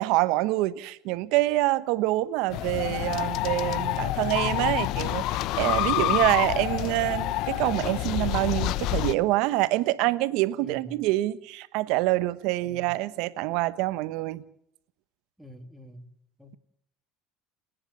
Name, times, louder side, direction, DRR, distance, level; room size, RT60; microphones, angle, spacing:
voice 1, 0.0-14.4, right 18 dB, 75° right, 1.1 m, -26 dB
sound 1, 2.5-9.1, left 15 dB, 65° left, 0.7 m, -28 dB
voice 2, 5.8-6.5 10.6-11.0 12.6-12.9 15.4-16.1 16.4-16.6, left 1 dB, ahead, 2.7 m, -46 dB
30.0 x 10.0 x 8.7 m
hypercardioid pair, 80°, 0 cm